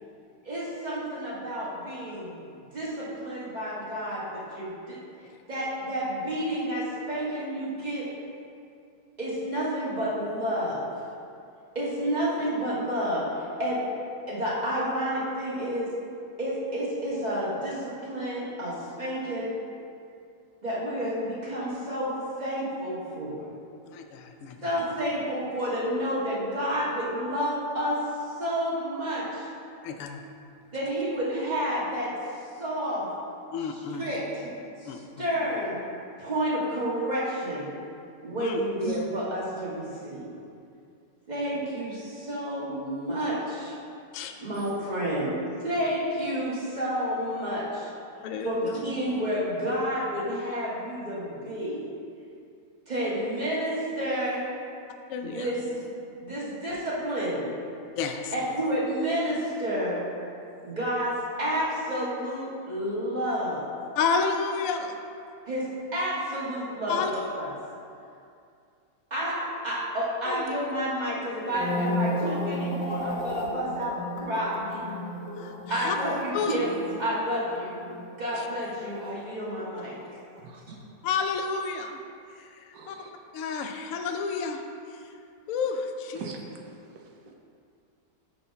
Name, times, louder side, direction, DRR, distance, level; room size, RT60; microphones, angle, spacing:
voice 1, 0.4-2.4 2.7-5.0 5.5-8.1 9.2-10.9 11.7-13.8 14.3-15.9 16.4-19.5 20.6-22.1 22.4-23.5 24.6-28.0 28.4-29.5 30.7-32.1 32.6-33.1 33.6-34.5 34.8-35.8 36.2-37.8 38.2-40.3 41.3-43.8 44.4-45.4 45.6-47.9 48.4-51.9 52.9-54.5 55.2-55.9 56.2-57.5 58.3-60.0 60.6-63.7 65.5-67.5 69.1-74.8 75.7-77.8 78.2-79.9, equal, 25° right, -7 dB, 1.6 m, -30 dB
voice 2, 23.9-24.8 29.8-30.2 33.5-34.1 34.9-35.2 38.4-38.6 44.1-44.3 48.2-48.8 55.1-55.5 58.0-58.3 64.0-65.0 66.9-67.1 70.3-70.4 75.4-76.0 76.3-76.6 78.4-78.5 81.0-82.0 82.4-83.0 83.3-84.6 85.5-86.3, left 5 dB, 70° left, 5 dB, 0.8 m, -31 dB
sound 1, 71.3-79.7 80.0-80.4, left 1 dB, 85° left, 1.5 m, -34 dB
voice 3, 82.7-83.1 86.2-87.3, right 5 dB, 70° right, 2 dB, 1.0 m, -43 dB
6.4 x 4.2 x 5.7 m, 2.4 s
omnidirectional pair, 1.9 m